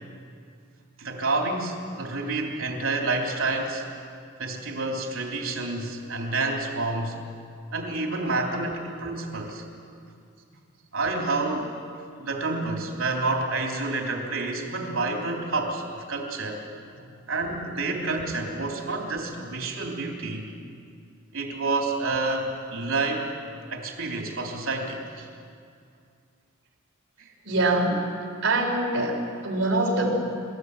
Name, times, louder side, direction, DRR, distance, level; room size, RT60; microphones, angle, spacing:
voice 1, 1.0-3.8 4.4-7.2 7.7-9.6 10.9-11.7 12.2-16.6 17.3-20.5 21.3-23.3 23.7-25.0 27.2-27.3, right 3 dB, 80° right, 1 dB, 3.3 m, -29 dB
voice 2, 27.4-28.0 28.4-30.1, right 2 dB, 60° right, 0 dB, 4.1 m, -24 dB
25.5 x 13.5 x 8.4 m, 2.3 s
head